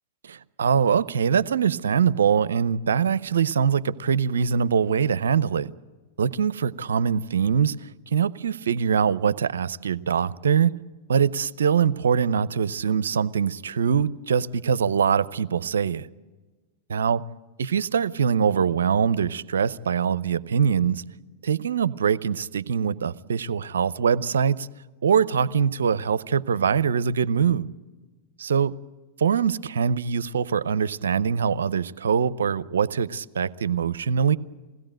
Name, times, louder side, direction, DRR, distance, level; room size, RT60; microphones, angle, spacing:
voice 1, 0.2-5.7 6.2-10.7 11.1-16.1 16.9-17.2 17.6-21.0 21.4-24.7 25.0-27.7 28.4-28.7 29.2-34.4, right 7 dB, 80° right, 0.6 m, -23 dB
21.0 x 16.5 x 9.0 m
hypercardioid pair, 110°, 0 cm